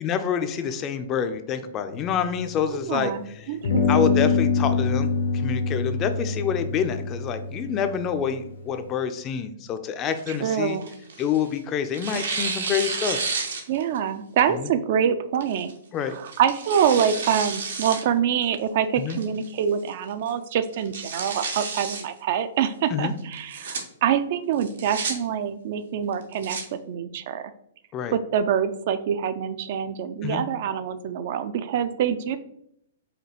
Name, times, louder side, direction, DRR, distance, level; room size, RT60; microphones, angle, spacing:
voice 1, 0.0-3.1 3.9-10.8 11.2-13.2 14.5-14.7 15.9-16.2 19.0-19.2 22.9-23.1 27.9-28.2 30.2-30.4, left 7 dB, 30° left, 9 dB, 0.4 m, -27 dB
sound 1, 1.9-3.1 3.6-8.8, left 5 dB, 75° left, 0.7 m, -26 dB
voice 2, 2.7-3.2 3.5-4.3 10.3-10.9 13.7-15.7 16.0-27.5 28.1-32.4, right 8 dB, 55° right, 11 dB, 0.3 m, -25 dB
Tearing, 10.1-11.5 11.9-14.0 14.4-14.5 15.4-15.7 16.2-18.0 18.4-18.5 19.1-19.5 19.9-20.0 20.3-20.4 20.7-22.0 23.3-23.8 24.6-25.1 26.1-26.6, right 4 dB, 80° right, 0.8 m, -31 dB
4.8 x 2.2 x 2.9 m, 0.73 s
hypercardioid pair, 130°, 0 cm